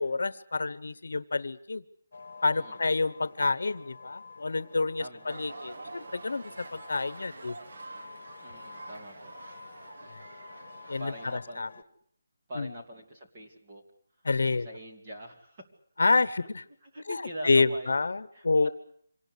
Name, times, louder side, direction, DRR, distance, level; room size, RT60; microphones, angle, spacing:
voice 1, 0.0-1.8 2.4-7.6 10.1-10.2 10.9-11.1 11.6-11.7 12.5-12.7 14.2-14.7 16.0-16.6 17.1-18.7, left 3 dB, 65° left, 17 dB, 1.0 m, -28 dB
sound 1, 2.1-11.8, left 4 dB, 50° left, 1.6 m, -50 dB
voice 2, 5.0-5.3 8.4-9.3 11.0-11.8 12.5-13.8 14.5-15.7 16.8-17.9 18.3-18.4, equal, 20° right, 0 dB, 2.6 m, -43 dB
sound 2, 5.3-11.4, right 3 dB, 50° right, 1.3 m, -46 dB
26.0 x 19.0 x 8.3 m, 0.63 s
hypercardioid pair, 180°, 0 cm